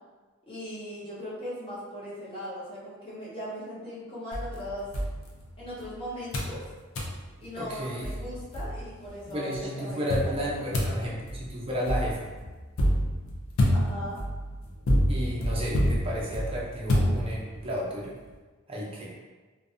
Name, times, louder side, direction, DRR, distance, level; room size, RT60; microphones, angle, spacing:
voice 1, 0.5-4.9 5.6-6.6 7.4-11.1 13.7-14.2, equal, 25° left, -9 dB, 0.8 m, -39 dB
sound 1, 4.3-5.9 6.3-6.6 6.9-7.2 7.7-7.8 8.0-9.1 10.1-17.7, equal, 75° left, 0.5 m, -28 dB
voice 2, 7.6-8.1 9.3-12.3 15.1-18.2 18.7-19.1, equal, 25° right, -5 dB, 0.5 m, -32 dB
2.6 x 2.1 x 2.4 m, 1.3 s
head